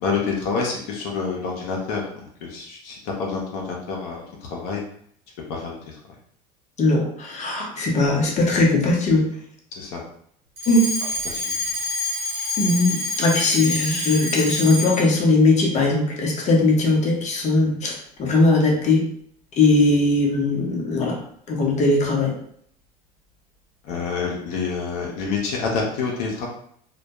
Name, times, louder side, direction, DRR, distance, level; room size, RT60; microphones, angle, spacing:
voice 1, 0.0-4.8 5.5-6.0 9.8-10.0 11.4-11.5 23.8-26.5, left 5 dB, 70° left, -2 dB, 0.6 m, -28 dB
voice 2, 6.8-9.3 10.7-10.9 12.6-19.0 19.5-21.2 21.5-22.4, left 2 dB, 35° left, -1 dB, 0.8 m, -19 dB
Alarm, 10.6-15.2, left 2 dB, 70° right, 1.1 m, -27 dB
2.2 x 2.1 x 2.8 m, 0.65 s
supercardioid pair, 95°, 20 cm